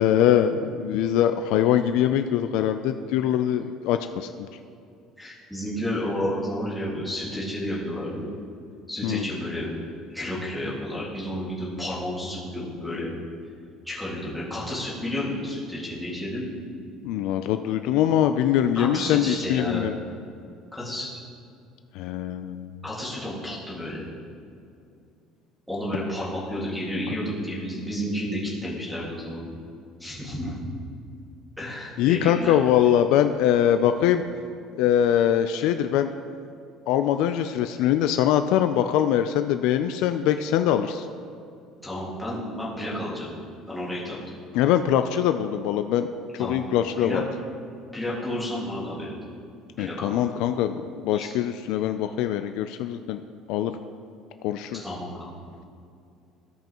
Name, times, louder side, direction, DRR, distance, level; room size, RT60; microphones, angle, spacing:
voice 1, 0.0-4.5 9.0-9.2 17.0-20.0 21.9-22.8 32.0-34.2 34.8-36.1 36.9-41.1 44.5-46.1 46.4-47.2 49.8-53.2 53.5-53.8 54.4-54.8, left 10 dB, 65° left, 8 dB, 0.3 m, -23 dB
voice 2, 5.2-8.3 8.9-9.7 10.1-13.1 13.8-16.6 18.8-19.9 20.7-21.1 22.8-24.0 25.7-29.5 30.0-30.6 31.6-32.9 34.0-34.1 41.8-43.3 43.7-44.2 46.4-46.6 47.0-47.2 47.9-49.1 49.8-50.2 51.1-51.3 54.7-55.3, left 1 dB, ahead, -8 dB, 1.9 m, -31 dB
16.0 x 5.5 x 3.0 m, 2.5 s
cardioid pair, 170°, 0 cm